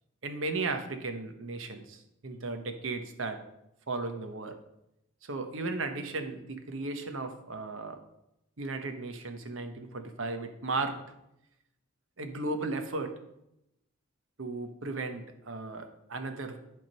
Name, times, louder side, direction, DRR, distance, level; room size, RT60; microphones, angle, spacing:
voice 1, 0.2-3.4 3.9-4.6 5.2-8.0 8.6-11.0 12.2-13.1 14.4-16.6, right 3 dB, 80° right, 7 dB, 1.0 m, -35 dB
10.5 x 3.6 x 5.5 m, 0.84 s
head